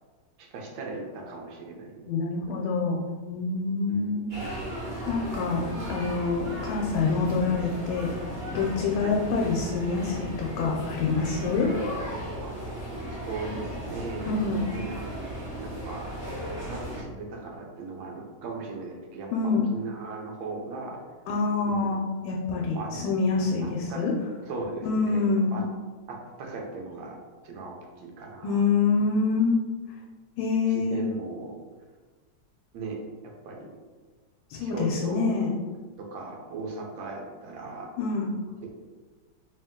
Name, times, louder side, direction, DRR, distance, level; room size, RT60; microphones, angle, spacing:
voice 1, 0.4-2.1 2.5-2.6 3.9-4.6 9.0-9.2 12.4-12.5 13.1-15.3 15.6-16.1 16.5-21.0 21.6-22.0 22.6-22.9 23.6-24.1 24.5-25.6 26.1-27.2 27.4-28.6 30.7-31.5 32.7-33.7 34.6-35.4 36.0-37.9 38.6-38.8, right 3 dB, 70° right, 0 dB, 1.4 m, -38 dB
voice 2, 2.1-3.0 3.3-4.2 5.1-8.1 8.5-11.7 14.2-14.6 19.3-19.7 21.3-24.1 24.8-25.6 28.4-29.6 30.4-31.0 34.5-35.6 38.0-38.3, left 4 dB, 80° left, -1 dB, 1.4 m, -26 dB
sound 1, 4.3-17.0, right 1 dB, 25° right, 1.3 m, -36 dB
3.4 x 2.9 x 3.6 m, 1.4 s
omnidirectional pair, 2.4 m